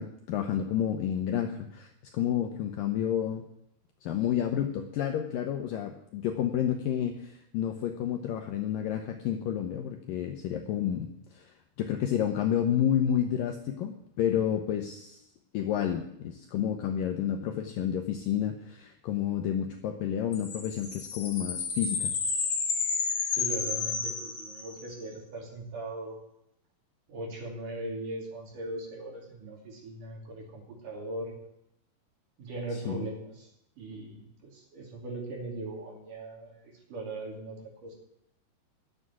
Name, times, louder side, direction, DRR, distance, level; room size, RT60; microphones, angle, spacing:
voice 1, 0.0-3.4 4.0-15.3 15.5-22.1 32.9-33.0, left 9 dB, 75° left, 5 dB, 2.1 m, -30 dB
sound 1, 20.3-24.9, left 5 dB, 45° left, 2.7 m, -31 dB
voice 2, 23.3-26.2 27.1-31.3 32.4-33.5 33.8-37.9, right 2 dB, 55° right, 1 dB, 4.1 m, -39 dB
11.5 x 7.5 x 9.6 m, 0.80 s
omnidirectional pair, 4.9 m